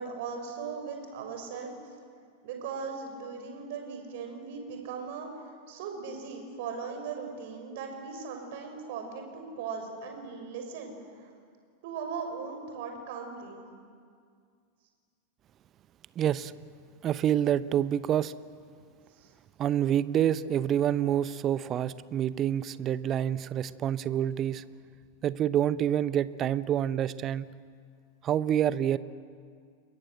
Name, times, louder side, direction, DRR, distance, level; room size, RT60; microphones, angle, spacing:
voice 1, 0.0-1.7 2.4-5.3 5.7-11.3 11.8-13.6 19.2-19.3, right 5 dB, 50° right, 4 dB, 6.2 m, -38 dB
voice 2, 16.2-16.5 17.0-18.3 19.6-24.6 25.2-27.5 28.2-29.0, right 10 dB, 30° right, 17 dB, 0.7 m, -27 dB
30.0 x 22.0 x 7.8 m, 2.1 s
figure-of-eight pair, 90°, 0 cm